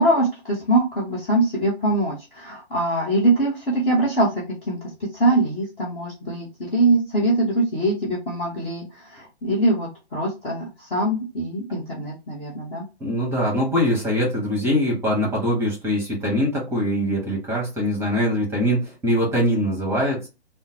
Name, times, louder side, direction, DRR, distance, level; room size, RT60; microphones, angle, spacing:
voice 1, 0.0-4.3 4.6-4.8 5.1-12.8, right 2 dB, 20° left, -5 dB, 0.9 m, -23 dB
voice 2, 13.0-20.3, equal, 10° right, -2 dB, 1.3 m, -22 dB
3.7 x 2.1 x 2.8 m, 0.28 s
figure-of-eight pair, 135°, 33 cm